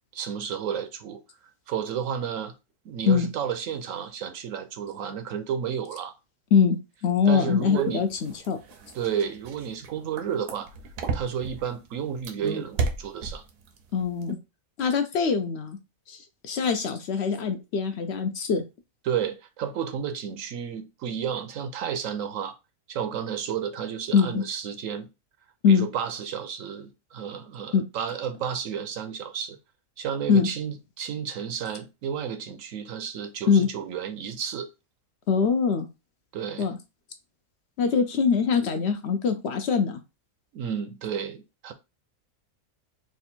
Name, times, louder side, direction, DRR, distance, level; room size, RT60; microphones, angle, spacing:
voice 1, 0.1-1.2 1.7-2.5 2.8-6.1 7.3-8.1 8.9-10.7 11.1-13.4 19.0-22.6 22.9-25.1 25.7-29.6 30.0-34.7 36.3-36.7 40.5-41.7, right 8 dB, 65° right, 0.8 m, -32 dB
voice 2, 7.0-8.6 13.9-14.4 14.8-15.8 16.1-18.6 24.1-24.4 25.6-25.9 27.7-27.8 30.3-30.5 33.5-33.7 35.3-35.9 36.6-36.8 37.8-40.0, left 6 dB, 70° left, 0.6 m, -23 dB
sound 1, 7.7-11.7 12.2-13.7 14.0-14.3, right 5 dB, 85° right, 1.3 m, -31 dB
3.4 x 2.5 x 4.2 m
omnidirectional pair, 1.6 m